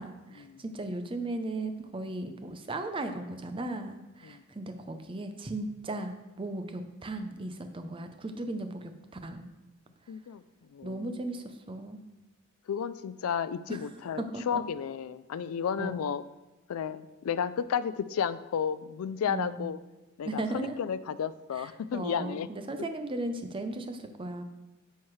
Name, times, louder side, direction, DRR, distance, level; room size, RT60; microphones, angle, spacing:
voice 1, 0.0-9.5 10.8-12.0 13.7-14.6 15.8-16.0 19.3-19.7 20.3-20.8 21.5-24.4, right 2 dB, 25° right, 7 dB, 0.5 m, -36 dB
voice 2, 10.1-10.4 10.7-11.1 12.7-16.2 16.7-19.8 20.2-22.5, left 7 dB, 90° left, 16 dB, 0.4 m, -32 dB
9.2 x 5.7 x 3.2 m, 1.0 s
head